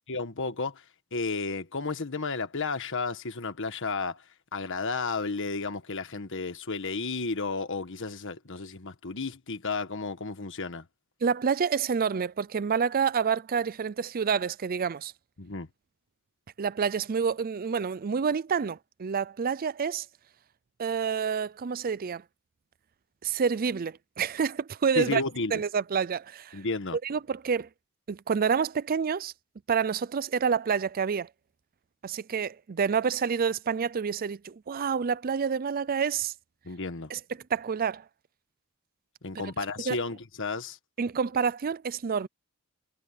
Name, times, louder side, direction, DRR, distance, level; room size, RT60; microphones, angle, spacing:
voice 1, 0.1-0.8 1.1-4.2 4.5-10.8 15.4-15.7 24.9-25.5 26.5-27.0 36.6-37.1 39.2-40.8, left 3 dB, 60° left, 1.5 m, -32 dB
voice 2, 11.2-15.1 16.6-20.1 20.8-22.2 23.2-25.2 25.5-26.6 27.0-27.7 28.1-29.3 29.7-31.3 32.0-36.3 37.1-37.2 37.5-38.0 39.9-40.0 41.0-42.3, right 6 dB, 40° right, 0.4 m, -28 dB
head